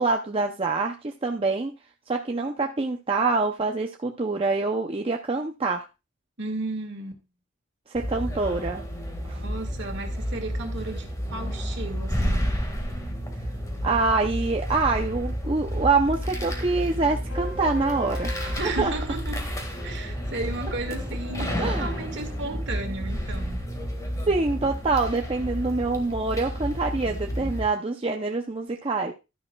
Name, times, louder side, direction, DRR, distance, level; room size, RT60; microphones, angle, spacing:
voice 1, 0.0-1.7 2.1-5.9 7.9-8.8 9.2-9.4 13.8-18.9 21.6-21.9 24.3-29.1, right 3 dB, 25° right, 0.6 m, -25 dB
voice 2, 6.4-7.2 9.3-12.5 18.6-19.5 19.8-23.6, right 2 dB, 55° right, 2.0 m, -34 dB
sound 1, 7.9-27.7, equal, 15° left, 1.8 m, -31 dB
sound 2, 17.3-22.4, left 2 dB, 85° left, 3.5 m, -42 dB
12.5 x 10.5 x 2.3 m
head